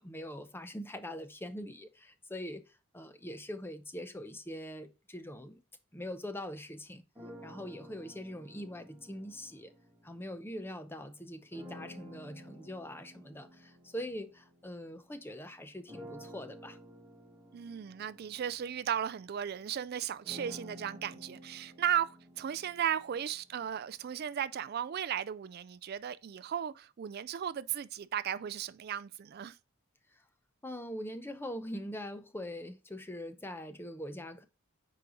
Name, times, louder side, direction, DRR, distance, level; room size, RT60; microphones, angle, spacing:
voice 1, 0.0-5.6 5.9-7.0 7.4-9.7 10.0-16.8 30.6-34.4, equal, 10° left, 0.6 m, -43 dB
sound 1, 7.1-10.7 11.5-15.3 15.9-23.8, equal, 10° right, 1.7 m, -52 dB
voice 2, 17.5-29.6, right 9 dB, 50° right, 0.3 m, -35 dB
7.5 x 5.0 x 3.9 m
head